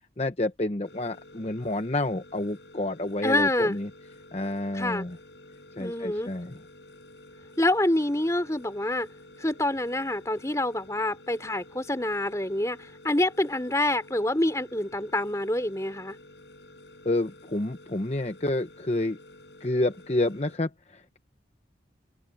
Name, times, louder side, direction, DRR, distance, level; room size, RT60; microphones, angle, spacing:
voice 1, 0.2-3.9 4.3-5.2 5.8-6.6 17.0-19.2 19.6-21.2, left 2 dB, 35° left, 0.8 m, -29 dB
sound 1, 0.8-20.6, left 1 dB, 80° left, 6.3 m, -51 dB
voice 2, 3.2-3.8 4.7-5.1 5.8-6.3 7.6-9.1 9.4-16.2, left 1 dB, 15° left, 3.1 m, -27 dB
open air
head